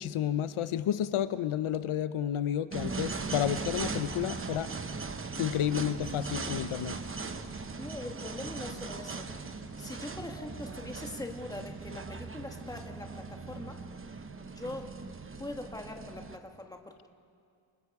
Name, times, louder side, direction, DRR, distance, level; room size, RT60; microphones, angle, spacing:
voice 1, 0.0-4.7 5.4-7.0, left 10 dB, 80° left, 13 dB, 0.7 m, -31 dB
sound 1, 2.7-16.4, right 4 dB, 25° right, 0.8 m, -39 dB
voice 2, 7.8-9.2 9.8-13.8 14.5-15.0 15.4-17.1, left 1 dB, 5° left, 3 dB, 1.4 m, -42 dB
28.0 x 24.5 x 4.8 m, 2.3 s
wide cardioid pair, 170°, 49 cm